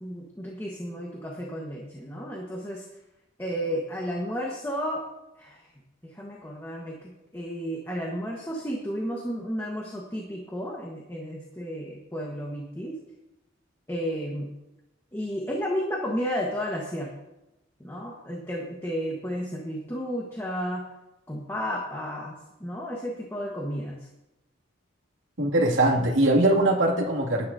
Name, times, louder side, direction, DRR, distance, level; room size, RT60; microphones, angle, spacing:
voice 1, 0.0-2.8 3.4-5.1 5.4-5.7 6.0-13.0 13.9-14.5 15.1-17.1 17.8-20.8 21.3-24.1, equal, 15° left, -2 dB, 1.4 m, -32 dB
voice 2, 25.4-27.5, right 1 dB, 80° right, -1 dB, 2.5 m, -21 dB
18.0 x 11.0 x 2.8 m, 0.94 s
head